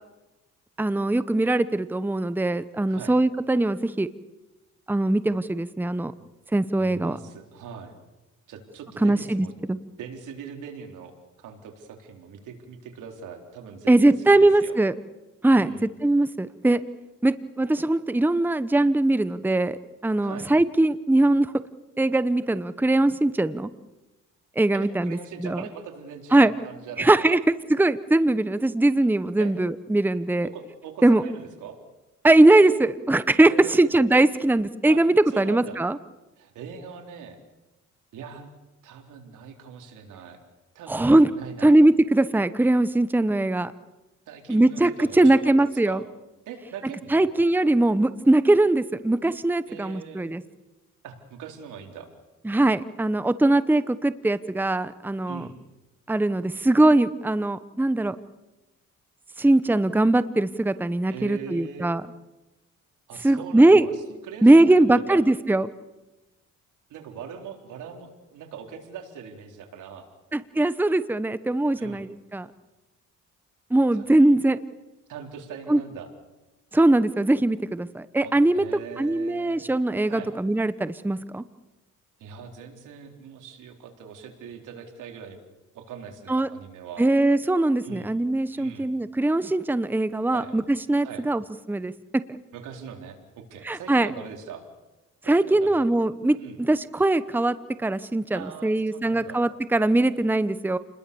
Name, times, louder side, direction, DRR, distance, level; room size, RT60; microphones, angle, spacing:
voice 1, 0.8-4.1 4.9-6.1 6.5-7.2 9.0-9.8 13.9-14.9 15.4-15.7 16.0-16.8 17.2-21.5 22.0-23.7 24.6-25.6 26.3-26.5 27.0-27.4 27.7-30.5 31.0-31.2 32.2-36.0 40.9-41.3 41.6-43.7 44.5-46.0 47.1-50.4 52.4-55.5 56.1-58.2 59.4-62.0 63.2-63.9 64.4-65.7 70.3-72.5 73.7-74.6 75.7-75.8 76.7-78.6 79.0-81.4 86.3-86.5 87.0-91.4 91.7-92.2 93.6-94.1 95.3-100.8, right 2 dB, 5° right, 14 dB, 0.9 m, -21 dB
voice 2, 6.8-7.9 8.5-9.5 10.0-14.8 15.5-15.9 20.2-20.5 24.7-27.4 29.4-29.5 30.4-31.8 33.5-33.8 34.9-35.8 36.4-37.4 38.1-38.5 38.8-40.4 40.7-41.8 44.3-46.0 46.5-47.3 49.7-50.3 51.0-52.1 55.3-55.6 61.1-61.9 63.1-65.2 66.9-70.1 71.8-72.0 73.9-74.1 75.1-76.1 78.2-79.7 80.0-80.3 82.2-85.4 85.7-87.1 87.8-88.1 88.5-88.9 90.3-90.5 91.0-91.3 92.5-94.6 95.2-95.9 96.4-96.6 98.3-99.5, right 7 dB, 85° right, 4 dB, 4.1 m, -41 dB
29.5 x 21.0 x 7.0 m, 1.1 s
cardioid pair, 90°, 30 cm